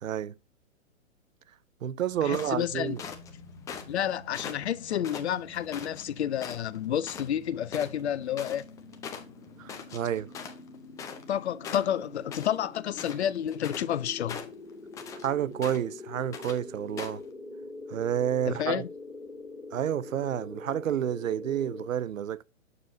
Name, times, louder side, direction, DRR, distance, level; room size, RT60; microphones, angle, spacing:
voice 1, 0.0-0.4 1.8-3.0 9.6-10.3 15.2-17.2 17.9-18.8 19.7-22.4, right 10 dB, 75° right, 0.6 m, -30 dB
sound 1, 2.1-21.9, left 2 dB, 80° left, 1.8 m, -46 dB
voice 2, 2.2-3.0 3.9-8.7 11.3-14.4 18.5-18.9, left 10 dB, 55° left, 0.6 m, -30 dB
sound 2, 2.3-3.3 3.7-4.0 4.3-6.0 6.4-6.8 7.0-7.3 7.5-11.4 11.6-12.6 12.9-13.9 14.3-15.3 15.6-16.0 16.3-16.6 17.0-17.2, left 7 dB, 10° left, 0.5 m, -41 dB
7.0 x 6.8 x 2.6 m
figure-of-eight pair, 115°, 40 cm